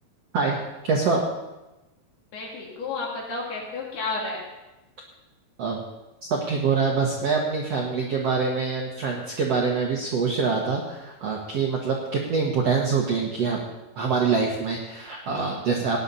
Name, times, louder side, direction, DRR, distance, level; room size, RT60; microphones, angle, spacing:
voice 1, 0.8-1.2 5.6-5.8 6.3-13.6 13.9-16.0, right 5 dB, 65° right, -1 dB, 1.6 m, -25 dB
voice 2, 2.3-4.4, left 3 dB, 70° left, -3 dB, 5.1 m, -31 dB
18.0 x 10.5 x 4.2 m, 1.0 s
omnidirectional pair, 4.6 m